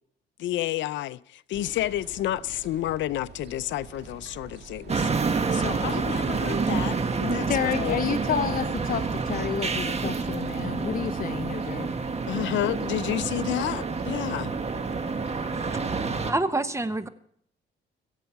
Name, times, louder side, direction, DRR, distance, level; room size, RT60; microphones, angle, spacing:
voice 1, 0.4-8.0 12.3-14.5, left 14 dB, 70° left, 0.5 m, -30 dB
sound 1, 1.5-15.8, right 5 dB, 55° right, 2.0 m, -46 dB
sound 2, 4.9-16.3, right 4 dB, 30° right, 1.5 m, -28 dB
voice 2, 7.5-12.1, left 7 dB, 45° left, 0.8 m, -30 dB
voice 3, 15.4-17.1, right 2 dB, 15° right, 0.8 m, -29 dB
22.5 x 8.0 x 4.6 m
cardioid pair, 90°, 20 cm